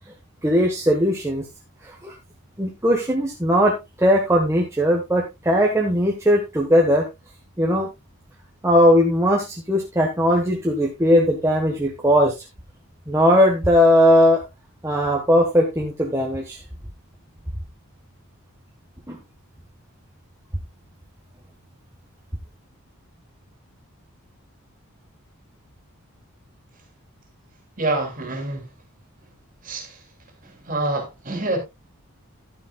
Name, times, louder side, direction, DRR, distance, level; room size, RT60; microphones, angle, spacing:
voice 1, 0.4-1.4 1.8-2.1 2.6-7.1 7.6-7.9 8.6-12.3 13.1-14.4 14.8-16.6 19.1-19.2, equal, 10° right, 1.3 m, -19 dB
voice 2, 27.8-28.7 29.6-30.0 30.4-31.6, right 2 dB, 35° right, 2.9 m, -26 dB
11.5 x 9.5 x 2.3 m
head